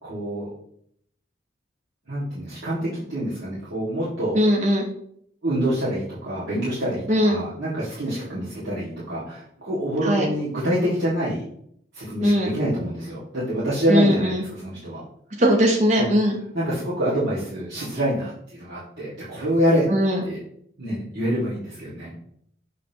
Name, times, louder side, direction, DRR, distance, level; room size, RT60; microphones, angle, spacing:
voice 1, 0.0-0.5 2.1-4.4 5.4-11.5 11.9-15.0 16.0-16.1 16.5-19.9 20.2-20.4 20.8-22.1, equal, 65° right, -11 dB, 2.1 m, -26 dB
voice 2, 4.3-4.9 7.1-7.4 10.0-10.3 12.2-12.5 13.9-14.4 15.4-16.4 19.9-20.2, equal, 40° right, 1 dB, 0.9 m, -19 dB
6.7 x 5.5 x 2.9 m, 0.68 s
head